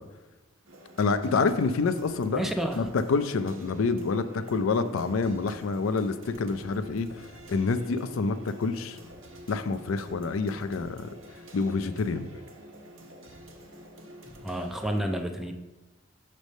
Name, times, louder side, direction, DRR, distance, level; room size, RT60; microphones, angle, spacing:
sound 1, 0.7-15.0, right 1 dB, 80° right, 1.0 m, -49 dB
voice 1, 1.0-2.5 2.8-9.0 9.5-11.1 11.5-12.3, left 4 dB, 80° left, 10 dB, 0.4 m, -27 dB
voice 2, 2.3-2.8 14.4-15.5, equal, ahead, 5 dB, 0.3 m, -30 dB
6.4 x 3.2 x 5.2 m, 1.1 s
head